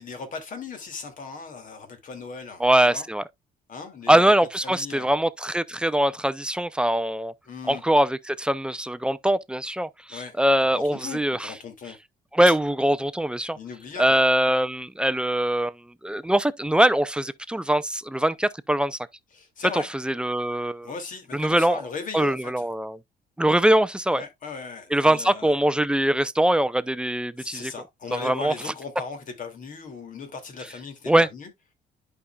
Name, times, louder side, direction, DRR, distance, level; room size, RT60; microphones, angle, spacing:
voice 1, 0.0-3.1 3.7-4.3 4.6-5.1 7.5-7.8 10.1-10.4 10.7-12.0 13.5-14.2 19.3-19.9 20.8-22.7 24.1-25.6 27.4-31.5, left 5 dB, 55° left, 2.4 m, -38 dB
voice 2, 2.6-3.2 4.1-7.3 7.7-11.5 12.3-13.6 14.0-15.7 16.0-19.0 19.7-20.9 21.3-21.8 22.1-23.0 23.4-24.2 24.9-27.7 28.1-28.5 31.1-31.3, right 1 dB, 5° right, 0.4 m, -22 dB
11.0 x 5.3 x 2.3 m
cardioid pair, 120°, 16 cm